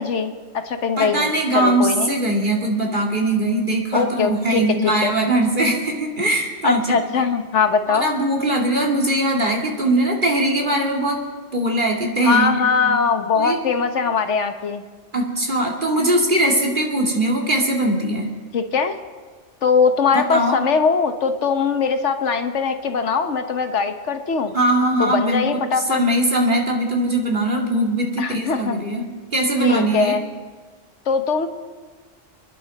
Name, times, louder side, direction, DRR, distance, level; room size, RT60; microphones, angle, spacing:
voice 1, 0.0-1.3 1.5-2.1 3.9-5.1 6.6-8.1 12.2-14.8 18.5-18.9 19.6-24.5 25.0-26.0 28.2-28.8 29.6-30.2 31.1-31.5, left 5 dB, 75° left, 7 dB, 1.3 m, -21 dB
voice 2, 1.0-7.0 7.9-11.2 11.5-12.5 12.8-13.0 13.3-13.6 15.1-18.3 20.1-20.6 24.5-30.2, right 1 dB, 40° right, -1 dB, 2.6 m, -21 dB
29.0 x 10.5 x 4.1 m, 1.4 s
omnidirectional pair, 1.2 m